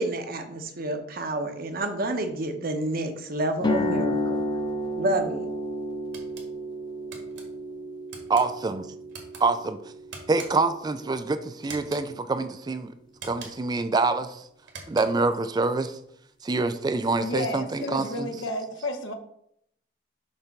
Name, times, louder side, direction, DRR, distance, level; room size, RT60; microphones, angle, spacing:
voice 1, 0.0-4.4 5.0-5.5, right 2 dB, 50° right, 6 dB, 0.9 m, -29 dB
sound 1, 3.6-11.6, left 1 dB, 25° left, 0.6 m, -32 dB
sound 2, 6.1-6.5 7.1-7.4 8.1-8.5 9.1-9.4 10.1-10.7 11.6-12.1 13.1-13.7 14.6-15.3, right 4 dB, 65° right, 1.6 m, -43 dB
voice 2, 8.3-8.8 9.4-9.8 10.3-12.9 13.2-14.4 14.9-16.0 16.4-18.3, right 3 dB, 20° right, 11 dB, 0.3 m, -26 dB
voice 3, 17.2-19.1, left 1 dB, 90° left, 5 dB, 1.0 m, -32 dB
6.6 x 3.4 x 5.9 m, 0.73 s
head